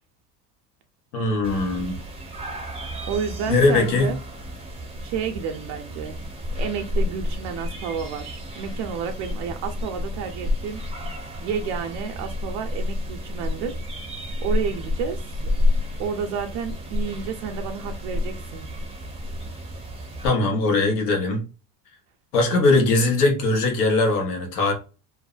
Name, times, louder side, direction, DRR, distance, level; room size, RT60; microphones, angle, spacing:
voice 1, 1.1-2.0 3.5-4.1 20.2-21.4 22.3-24.7, left 2 dB, 80° left, 1.0 m, -20 dB
sound 1, 1.4-20.3, left 1 dB, 15° right, 0.6 m, -30 dB
voice 2, 3.1-4.2 5.0-6.2 6.5-10.8 11.4-13.8 14.4-15.2 16.0-18.7, right 6 dB, 65° right, 0.6 m, -30 dB
2.6 x 2.0 x 2.3 m
hypercardioid pair, 75°, 46 cm